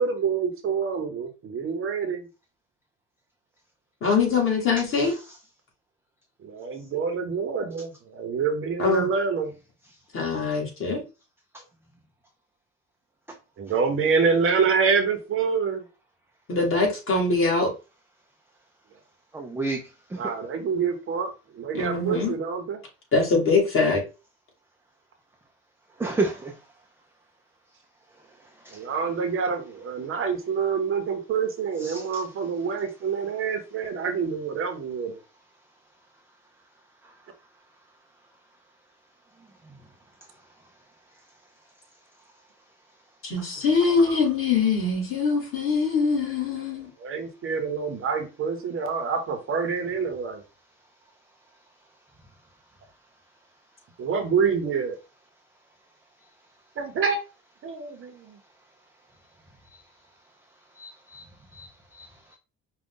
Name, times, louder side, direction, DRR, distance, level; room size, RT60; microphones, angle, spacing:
voice 1, 0.0-2.3 6.4-9.5 13.6-15.8 20.2-22.8 28.8-35.2 44.1-44.2 47.0-50.4 54.0-55.0 56.8-57.2 57.6-58.4, right 5 dB, 40° right, 0.7 m, -26 dB
voice 2, 4.0-5.2 8.8-9.1 10.1-11.0 16.5-17.7 21.7-22.3 23.1-24.0 43.2-46.9, left 4 dB, 40° left, 1.8 m, -23 dB
voice 3, 19.3-19.8 20.1-20.2 26.0-26.5 31.9-32.0 60.8-61.2 61.5-61.7 61.9-62.1, right 3 dB, 5° right, 0.3 m, -29 dB
5.1 x 2.2 x 3.6 m
cardioid pair, 160°, 33 cm